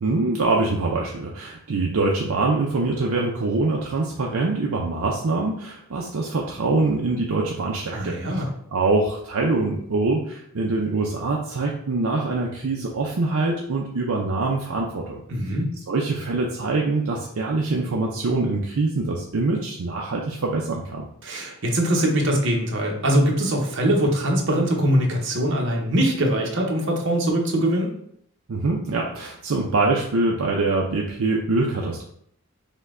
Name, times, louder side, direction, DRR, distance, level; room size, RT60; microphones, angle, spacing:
voice 1, 0.0-8.4 8.7-15.2 15.9-21.0 28.5-32.0, right 3 dB, 70° right, -1 dB, 0.5 m, -24 dB
voice 2, 7.9-8.5 15.3-15.7 21.2-27.9, right 1 dB, 55° right, 0 dB, 0.9 m, -22 dB
5.4 x 2.2 x 3.6 m, 0.70 s
head